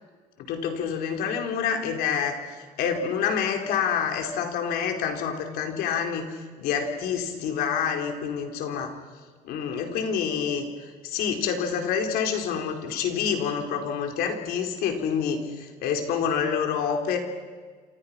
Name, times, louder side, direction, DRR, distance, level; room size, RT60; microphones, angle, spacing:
voice 1, 0.4-2.4 2.8-8.9 9.4-17.2, left 7 dB, 80° left, 4 dB, 4.1 m, -27 dB
27.5 x 27.5 x 5.8 m, 1.5 s
cardioid pair, 145°, 16 cm